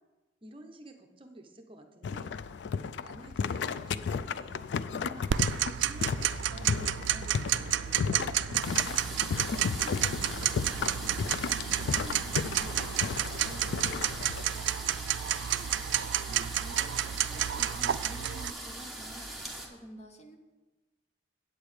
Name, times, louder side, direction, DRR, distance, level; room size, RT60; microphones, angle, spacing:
voice 1, 0.4-2.3 3.0-9.1 9.8-11.3 11.8-12.8 13.3-15.0, right 1 dB, 30° right, 5 dB, 0.7 m, -50 dB
sound 1, 2.0-14.5, left 6 dB, 65° left, 0.3 m, -34 dB
Tick-tock, 5.3-18.5, right 11 dB, 70° right, 0.3 m, -31 dB
sound 2, 8.6-19.7, right 1 dB, ahead, 1.0 m, -42 dB
voice 2, 16.2-20.4, right 1 dB, 35° left, 4 dB, 0.9 m, -49 dB
8.7 x 8.2 x 4.8 m, 1.2 s
head